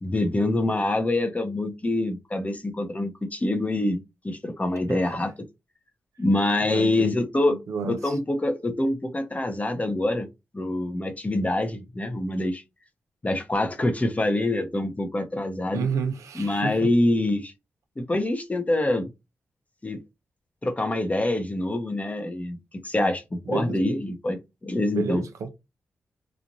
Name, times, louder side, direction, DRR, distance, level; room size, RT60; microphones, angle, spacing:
voice 1, 0.0-5.3 6.2-7.6 7.9-10.3 10.5-12.6 13.2-15.9 16.3-17.5 18.0-19.1 19.8-20.0 20.6-22.6 22.8-25.2, left 1 dB, 30° left, 0.8 m, -25 dB
voice 2, 4.9-5.3 6.7-7.1 7.4-8.2 15.7-16.9 23.5-23.8 24.9-25.5, right 5 dB, 85° right, 0.5 m, -30 dB
3.1 x 2.5 x 2.6 m
cardioid pair, 45°, 5 cm